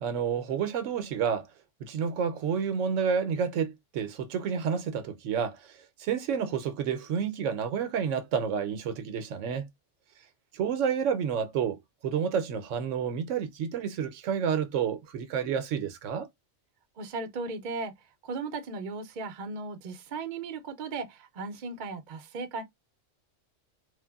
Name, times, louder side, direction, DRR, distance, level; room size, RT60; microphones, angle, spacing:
voice 1, 0.0-1.5 1.8-5.6 6.0-9.7 10.5-11.8 12.0-16.3, right 7 dB, 75° right, 0.9 m, -29 dB
voice 2, 17.0-17.9 18.2-22.6, right 3 dB, 50° right, 0.6 m, -36 dB
3.3 x 2.1 x 2.2 m
omnidirectional pair, 1.3 m